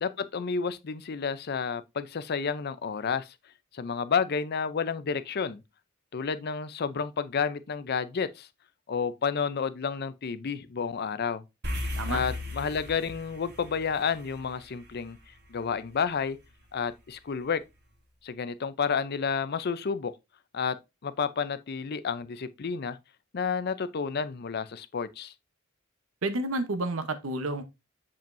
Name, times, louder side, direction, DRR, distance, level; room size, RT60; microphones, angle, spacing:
voice 1, 0.0-3.3 3.7-5.6 6.1-8.5 8.9-11.4 12.1-15.2 15.5-16.4 16.7-17.6 18.2-20.1 20.5-20.8 21.0-23.0 23.3-25.3, left 6 dB, 50° left, 0.5 m, -30 dB
sound 1, 11.6-16.1, left 1 dB, 55° right, 1.9 m, -37 dB
voice 2, 26.2-27.6, right 2 dB, 75° right, 0.9 m, -30 dB
7.2 x 5.2 x 2.6 m
head